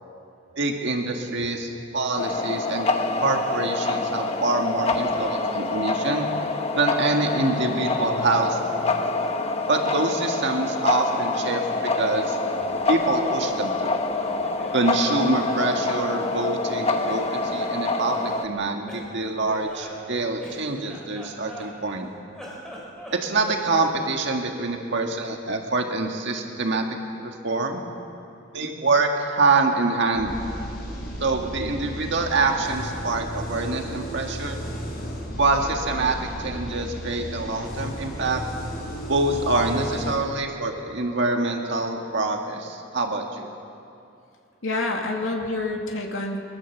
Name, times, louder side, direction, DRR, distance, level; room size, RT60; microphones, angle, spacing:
voice 1, 0.5-2.9 3.2-6.3 6.7-8.9 9.7-12.4 12.9-14.0 14.7-22.1 23.1-26.9 27.2-27.8 28.5-30.4 31.2-34.6 35.4-38.4 39.1-43.5, right 3 dB, 60° right, 2 dB, 1.8 m, -25 dB
sound 1, 2.2-18.5, left 3 dB, 30° left, 1.2 m, -26 dB
Laughter, 12.7-14.9 15.2-16.8 17.0-18.2 18.9-22.0 22.3-24.2, equal, 5° left, 4.0 m, -43 dB
sound 2, 30.1-40.1, equal, 50° left, 5.2 m, -34 dB
voice 2, 44.6-46.4, left 2 dB, 75° left, 1 dB, 2.5 m, -27 dB
22.5 x 22.0 x 7.2 m, 2.6 s
head